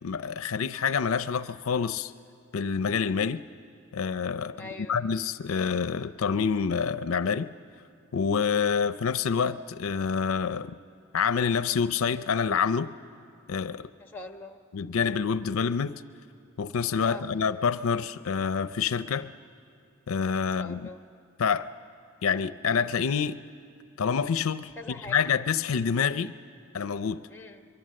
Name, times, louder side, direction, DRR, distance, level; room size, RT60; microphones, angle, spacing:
voice 1, 0.0-2.1 2.5-3.4 3.9-7.5 8.1-10.8 11.1-12.9 13.5-13.9 14.7-16.0 16.6-19.3 20.1-20.9 21.4-21.7 22.2-23.4 24.0-24.7 25.1-26.3 26.7-27.2, left 6 dB, 75° left, 0.5 m, -27 dB
voice 2, 4.6-5.0 14.0-14.6 17.0-17.3 20.4-21.0 24.8-25.2 27.3-27.7, left 2 dB, 10° left, 1.1 m, -42 dB
24.5 x 23.5 x 7.6 m
head